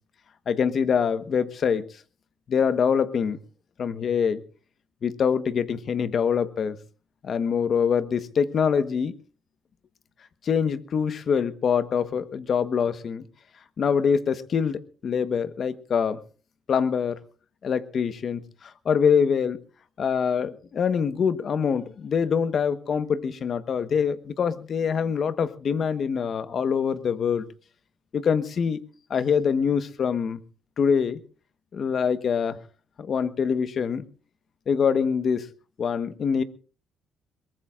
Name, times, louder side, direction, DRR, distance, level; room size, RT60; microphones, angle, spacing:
voice 1, 0.5-1.8 2.5-3.4 3.8-4.4 5.0-6.8 7.2-9.1 10.4-13.2 13.8-16.2 16.7-17.2 17.6-19.6 20.0-27.5 28.1-28.8 29.1-30.4 30.8-31.2 31.7-32.6 33.0-34.0 34.7-35.5 35.8-36.4, left 6 dB, 55° left, 1.2 m, -24 dB
22.5 x 20.5 x 2.5 m
cardioid pair, 90°, 0 cm